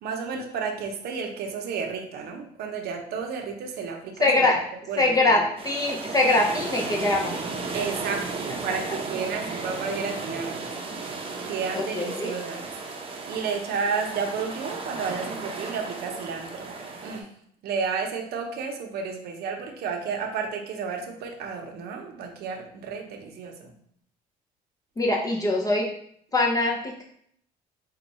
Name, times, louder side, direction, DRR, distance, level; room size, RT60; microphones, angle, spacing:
voice 1, 0.0-4.5 4.9-5.4 7.7-10.7 11.5-12.7 13.3-16.7 17.0-17.3 17.6-23.7, right 5 dB, 70° right, 3 dB, 0.7 m, -32 dB
voice 2, 4.2-4.6 5.0-7.4 11.7-12.3 25.0-25.9 26.3-27.0, left 2 dB, 20° left, -1 dB, 0.6 m, -23 dB
sound 1, 5.6-17.2, right 3 dB, 35° right, 0.7 m, -34 dB
4.4 x 2.3 x 4.1 m, 0.67 s
cardioid pair, 110°, 17 cm